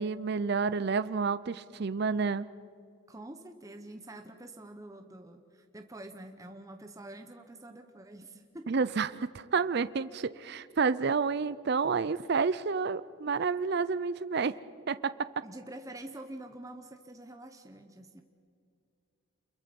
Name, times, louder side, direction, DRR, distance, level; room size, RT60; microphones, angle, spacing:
voice 1, 0.0-2.5 8.7-14.5 14.9-15.1, right 5 dB, 50° right, 16 dB, 0.5 m, -29 dB
voice 2, 3.1-8.7 15.4-18.2, right 1 dB, 15° right, 5 dB, 0.9 m, -46 dB
28.5 x 22.0 x 5.3 m, 2.4 s
head